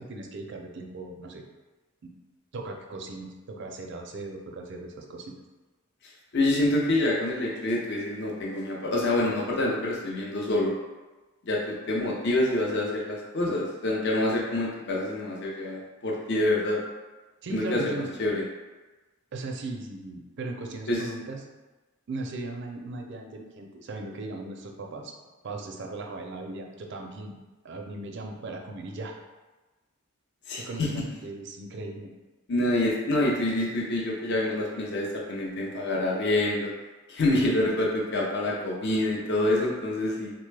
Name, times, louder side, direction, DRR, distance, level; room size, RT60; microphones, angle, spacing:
voice 1, 0.0-1.4 2.0-2.1 2.5-5.3 17.4-18.1 19.3-21.4 22.1-25.1 25.4-27.4 27.6-29.1 30.6-32.1, right 2 dB, 60° right, 2 dB, 0.4 m, -38 dB
voice 2, 6.3-10.7 11.5-16.8 17.5-17.9 18.2-18.4 20.9-21.0 30.5-30.9 32.5-36.7 37.1-40.3, left 1 dB, 55° left, -3 dB, 0.5 m, -26 dB
4.0 x 2.2 x 3.2 m, 1.2 s
head